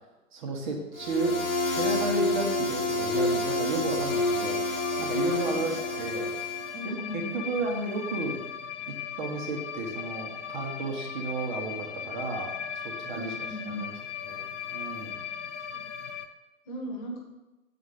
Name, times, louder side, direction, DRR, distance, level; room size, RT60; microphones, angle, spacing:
voice 1, 0.3-1.4 1.7-6.3 6.8-8.4 8.9-12.5 12.8-13.3 13.7-13.9 14.3-15.2, right 3 dB, 35° right, 1 dB, 1.2 m, -33 dB
sound 1, 1.0-6.8, left 2 dB, 80° left, 1.3 m, -28 dB
sound 2, 4.1-16.3, left 8 dB, 60° left, 0.7 m, -38 dB
voice 2, 5.2-5.7 6.7-7.4 13.1-13.9 15.7-15.9 16.6-17.2, equal, 25° left, 0 dB, 1.4 m, -38 dB
6.9 x 4.3 x 4.9 m, 1.0 s
figure-of-eight pair, 130°, 40 cm